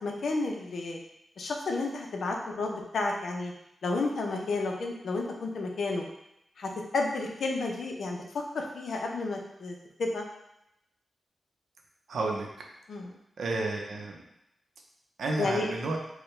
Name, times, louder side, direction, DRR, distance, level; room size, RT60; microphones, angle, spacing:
voice 1, 0.0-1.0 1.4-3.5 3.8-6.0 6.6-8.2 8.5-10.2 12.9-13.1 15.4-15.7, left 3 dB, 70° left, 1 dB, 0.6 m, -31 dB
voice 2, 12.1-12.5 13.4-14.2 15.2-16.0, right 2 dB, 75° right, 1 dB, 0.6 m, -31 dB
4.6 x 2.2 x 3.2 m, 0.82 s
wide cardioid pair, 135°, 0 cm